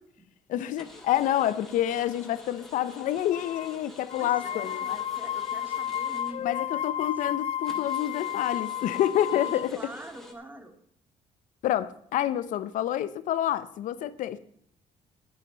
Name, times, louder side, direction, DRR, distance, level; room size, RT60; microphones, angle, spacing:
voice 1, 0.5-5.0 6.4-9.8 11.6-14.4, left 12 dB, 75° left, 0.9 m, -28 dB
sound 1, 0.8-6.8 7.2-7.3 7.6-10.3, left 1 dB, 5° left, 2.9 m, -48 dB
sound 2, 3.3-3.7 4.1-9.7, left 10 dB, 50° left, 0.5 m, -32 dB
voice 2, 4.2-6.4 6.7-6.8 7.2-7.3 9.3-10.7, right 1 dB, 15° right, 2.3 m, -44 dB
11.5 x 9.8 x 5.3 m
cardioid pair, 95°, 13 cm